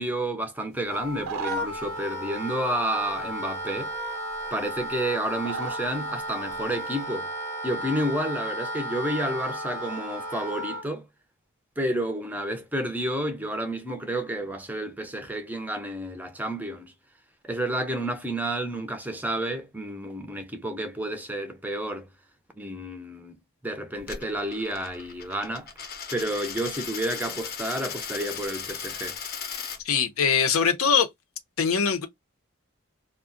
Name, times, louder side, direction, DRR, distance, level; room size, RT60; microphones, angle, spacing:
voice 1, 0.0-3.9 4.5-7.3 7.6-11.1 11.8-16.9 17.4-22.1 22.6-25.7 26.1-29.2, right 1 dB, 10° right, 0.4 m, -30 dB
Wind instrument woodwind instrument, 0.9-10.9, equal, 10° left, 0.8 m, -34 dB
sound 1, 1.0-1.9 3.1-3.2 3.9-4.0 4.3-5.0 5.4-5.9 6.2-6.7, right 6 dB, 80° right, 0.5 m, -36 dB
Coin (dropping), 24.0-29.8, left 6 dB, 45° left, 0.6 m, -37 dB
voice 2, 29.8-31.1 31.6-32.1, left 6 dB, 80° left, 0.7 m, -22 dB
2.3 x 2.1 x 3.6 m
head